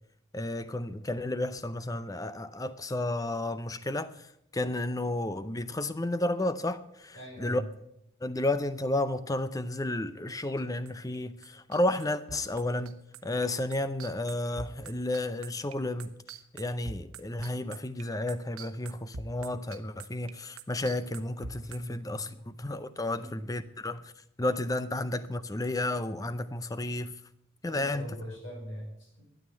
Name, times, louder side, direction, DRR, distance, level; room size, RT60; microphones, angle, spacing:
voice 1, 0.3-7.6 8.2-16.2 16.5-24.1 24.4-27.2 27.6-28.1, left 1 dB, 15° left, 0.6 m, -32 dB
voice 2, 7.1-7.7 21.6-22.4 23.1-23.3 27.7-29.2, equal, 60° left, 5.5 m, -42 dB
sound 1, 10.3-11.2 11.4-21.8, right 4 dB, 90° right, 1.0 m, -43 dB
12.5 x 9.3 x 7.5 m
head